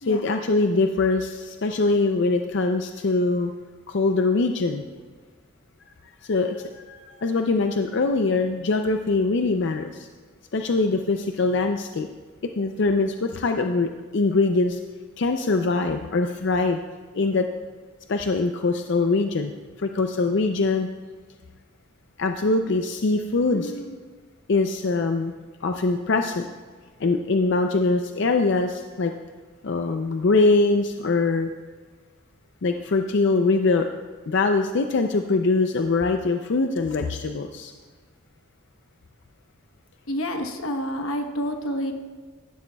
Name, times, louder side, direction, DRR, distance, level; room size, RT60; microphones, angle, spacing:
voice 1, 0.0-3.5 3.9-4.9 6.2-10.1 10.5-12.1 12.6-14.8 15.2-16.8 17.1-17.5 18.1-19.5 19.8-20.9 22.2-23.7 24.5-25.3 25.6-26.5 27.0-29.1 29.6-31.5 32.6-33.9 34.3-37.7, left 3 dB, 60° left, 6 dB, 0.5 m, -23 dB
voice 2, 23.5-24.0 40.1-41.9, equal, 90° left, 6 dB, 1.1 m, -29 dB
15.5 x 11.5 x 2.3 m, 1.4 s
head